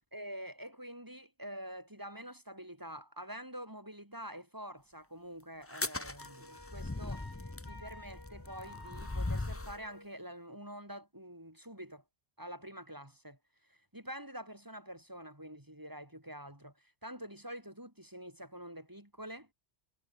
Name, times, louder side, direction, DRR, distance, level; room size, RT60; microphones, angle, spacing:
voice 1, 0.1-7.3 7.7-12.0 12.4-19.5, equal, 15° right, 3.9 m, -47 dB
sound 1, 5.6-9.9, left 2 dB, 15° left, 0.7 m, -39 dB
Wind instrument woodwind instrument, 6.2-10.1, left 1 dB, 75° left, 7.0 m, -54 dB
omnidirectional pair, 1.2 m